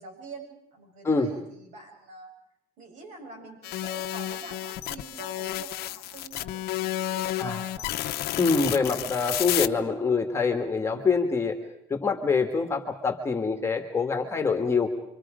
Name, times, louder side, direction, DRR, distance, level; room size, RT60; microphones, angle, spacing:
voice 1, 0.0-2.3 2.8-8.0, right 3 dB, 50° right, 1 dB, 7.8 m, -45 dB
sound 1, 3.6-9.7, left 14 dB, 75° left, 0.9 m, -31 dB
voice 2, 8.4-11.5 11.9-14.9, left 4 dB, 15° left, 3 dB, 1.7 m, -25 dB
27.5 x 25.0 x 5.1 m, 0.78 s
cardioid pair, 155°, 16 cm